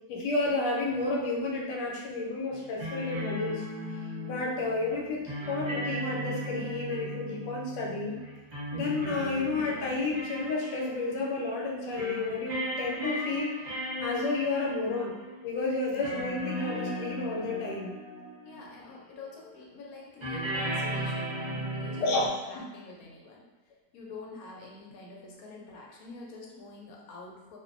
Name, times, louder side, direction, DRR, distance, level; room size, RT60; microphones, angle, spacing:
voice 1, 0.1-3.6 4.2-8.2 8.7-13.5 14.0-15.2 15.4-17.9 22.0-22.3, left 3 dB, 80° left, -2 dB, 1.2 m, -31 dB
sound 1, 2.5-18.9 20.2-22.3, equal, 45° right, 0.5 m, -37 dB
voice 2, 18.4-23.4 23.9-27.6, left 3 dB, 65° left, -3 dB, 1.0 m, -46 dB
2.6 x 2.5 x 2.4 m, 1.1 s
omnidirectional pair, 1.9 m